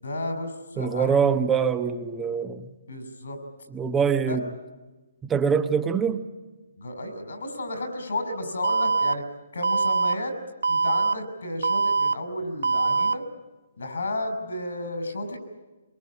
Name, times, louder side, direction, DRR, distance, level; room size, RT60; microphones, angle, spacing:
voice 1, 0.0-1.2 2.9-3.4 4.3-4.4 6.8-9.2 9.5-10.4 10.7-13.2 13.8-15.4, left 1 dB, 80° left, 5.9 m, -32 dB
voice 2, 0.8-2.7 3.7-4.5 5.2-6.2, right 6 dB, 10° right, 1.1 m, -24 dB
Alarm, 8.6-9.1 9.6-10.1 10.6-11.1 11.6-12.1 12.6-13.1, right 4 dB, 90° right, 0.8 m, -22 dB
24.0 x 23.0 x 8.7 m
hypercardioid pair, 155°, 0 cm